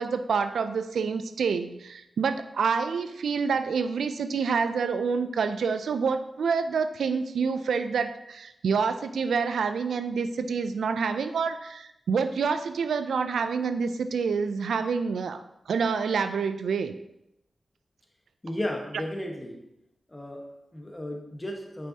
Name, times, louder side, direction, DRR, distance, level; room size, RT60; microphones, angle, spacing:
voice 1, 0.0-16.9, right 5 dB, 85° right, 10 dB, 0.3 m, -27 dB
voice 2, 18.4-19.6 20.1-21.9, left 1 dB, 25° left, 2 dB, 1.2 m, -34 dB
6.2 x 5.4 x 2.8 m, 0.85 s
cardioid pair, 40°, 0 cm